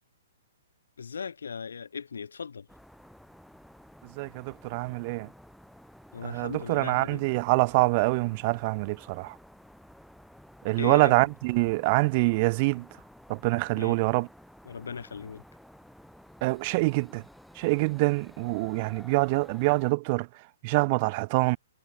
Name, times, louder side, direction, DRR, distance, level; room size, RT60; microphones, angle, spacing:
voice 1, 1.0-2.7 6.1-7.2 10.8-11.1 13.8-14.0 14.6-15.4, left 6 dB, 90° left, 3.1 m, -37 dB
sound 1, 2.7-19.9, equal, ahead, 5.6 m, -53 dB
voice 2, 4.2-5.3 6.2-9.3 10.6-12.9 13.3-14.3 16.4-17.2 17.6-20.3 20.6-21.6, right 26 dB, 40° right, 1.0 m, -25 dB
hypercardioid pair, 145°, 0 cm